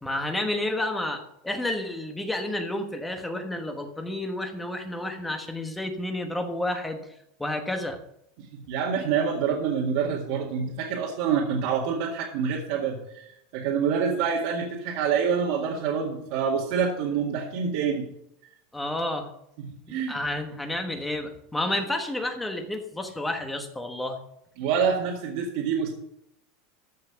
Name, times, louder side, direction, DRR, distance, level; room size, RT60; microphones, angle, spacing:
voice 1, 0.0-7.0 7.4-8.0 18.7-19.3 20.1-24.2, left 1 dB, 5° left, 5 dB, 1.3 m, -30 dB
voice 2, 8.4-18.1 19.6-20.2 24.6-26.0, right 6 dB, 60° right, -2 dB, 1.9 m, -27 dB
14.0 x 5.8 x 5.7 m, 0.78 s
supercardioid pair, 160°, 0 cm